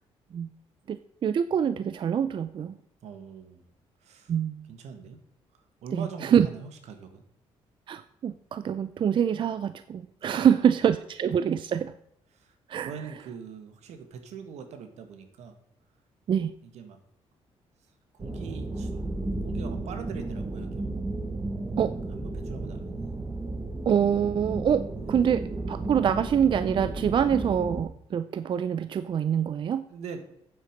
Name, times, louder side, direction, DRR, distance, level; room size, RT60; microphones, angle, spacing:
voice 1, 0.9-2.8 4.3-4.7 5.9-6.5 7.9-11.9 12.7-12.9 16.3-16.5 21.8-21.9 23.9-29.8, right 8 dB, 45° right, 12 dB, 0.5 m, -25 dB
voice 2, 3.0-3.7 4.0-4.3 4.7-5.2 5.8-7.2 10.3-10.7 12.3-12.6 12.8-15.6 16.6-17.0 17.9-19.1 19.4-20.9 22.1-23.1 25.1-25.2 29.9-30.2, right 6 dB, 80° right, 8 dB, 1.7 m, -42 dB
sound 1, 18.2-27.8, right 2 dB, 20° right, 1.2 m, -33 dB
8.8 x 7.7 x 5.2 m, 0.76 s
cardioid pair, 105°, 11 cm